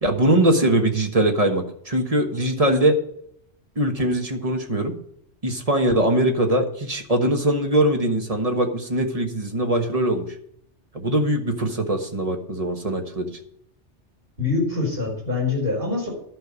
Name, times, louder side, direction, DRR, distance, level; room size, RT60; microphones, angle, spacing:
voice 1, 0.0-3.0 3.8-4.9 5.4-10.3 10.9-13.3, right 1 dB, 30° right, 4 dB, 1.3 m, -21 dB
voice 2, 14.4-16.1, left 3 dB, 50° right, -2 dB, 4.8 m, -24 dB
11.5 x 5.4 x 8.3 m, 0.71 s
omnidirectional pair, 1.2 m